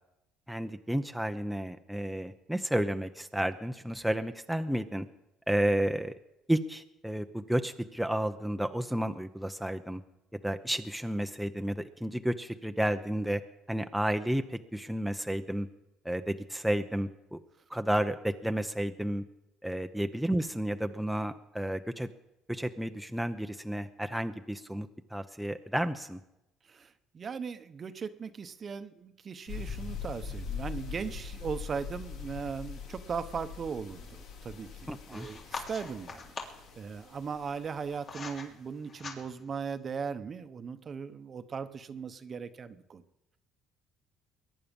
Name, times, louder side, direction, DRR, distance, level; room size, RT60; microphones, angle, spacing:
voice 1, 0.5-5.1 5.5-6.1 6.5-10.0 10.4-13.4 13.7-15.7 16.0-17.4 17.7-19.2 19.6-22.1 22.5-26.2 34.9-35.3, right 1 dB, ahead, 6 dB, 0.8 m, -31 dB
voice 2, 26.7-36.3 36.8-43.0, right 6 dB, 35° right, 11 dB, 1.0 m, -38 dB
sound 1, 29.5-37.9, left 6 dB, 75° left, 3.1 m, -42 dB
sound 2, 35.1-36.7 37.5-38.5 38.8-39.5, left 4 dB, 45° left, 3.3 m, -42 dB
22.0 x 10.0 x 5.4 m, 0.89 s
cardioid pair, 110°, 0 cm